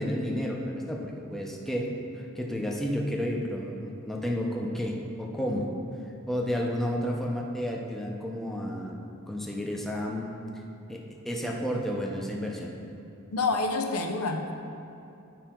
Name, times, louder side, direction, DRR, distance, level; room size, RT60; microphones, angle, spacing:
voice 1, 0.0-1.9 2.1-5.7 6.3-9.0 9.3-10.3 10.9-12.7, equal, ahead, -1 dB, 0.6 m, -31 dB
voice 2, 13.3-14.5, left 3 dB, 80° left, 5 dB, 0.6 m, -28 dB
9.2 x 4.9 x 4.4 m, 2.7 s
head